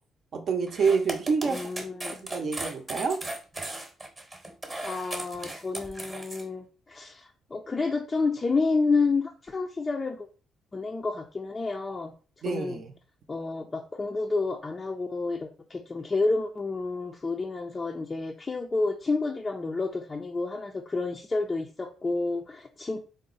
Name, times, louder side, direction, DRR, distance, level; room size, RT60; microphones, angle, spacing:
voice 1, 0.3-1.7 2.1-3.2 12.4-12.9, right 5 dB, 55° right, 4 dB, 0.6 m, -27 dB
sound 1, 0.7-6.4, right 2 dB, 20° right, 0.9 m, -37 dB
voice 2, 1.4-2.2 4.8-10.3 10.7-12.1 12.4-12.8 13.3-23.1, left 3 dB, 25° left, 2 dB, 0.4 m, -30 dB
3.9 x 2.0 x 3.8 m, 0.37 s
cardioid pair, 90°, 0 cm